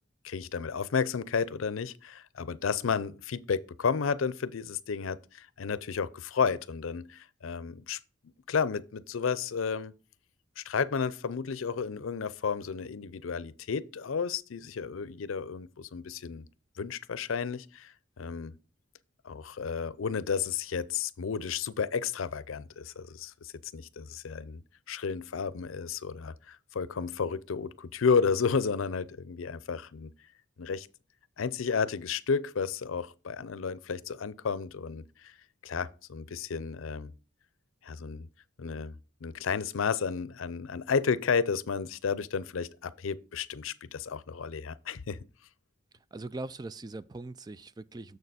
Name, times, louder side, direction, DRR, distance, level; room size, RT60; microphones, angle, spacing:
voice 1, 0.2-8.0 8.5-9.9 10.6-16.4 16.8-18.5 19.2-24.6 24.9-30.1 30.6-30.9 31.4-35.3 35.6-37.1 37.8-38.3 38.6-38.9 39.2-45.2, left 5 dB, 85° left, 0.5 m, -32 dB
voice 2, 46.1-48.2, right 2 dB, 20° right, 0.3 m, -41 dB
6.8 x 6.7 x 4.1 m
head